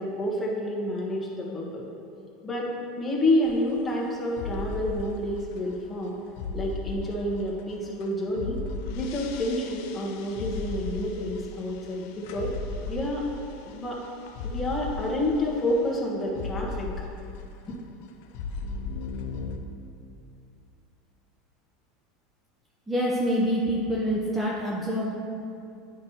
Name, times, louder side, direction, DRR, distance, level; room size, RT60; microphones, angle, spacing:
voice 1, 0.0-1.8 2.4-2.7 3.0-6.2 6.5-8.6 8.9-12.5 12.9-13.2 13.6-14.0 14.4-16.9 17.7-17.8, left 1 dB, 15° left, -3 dB, 1.4 m, -29 dB
sound 1, 3.4-4.1 4.4-8.1 8.4-17.7 18.0-19.6, left 3 dB, 70° left, 0.5 m, -36 dB
voice 2, 22.9-25.1, equal, 10° right, -5 dB, 0.8 m, -26 dB
9.2 x 5.3 x 2.9 m, 2.5 s
supercardioid pair, 110°, 0 cm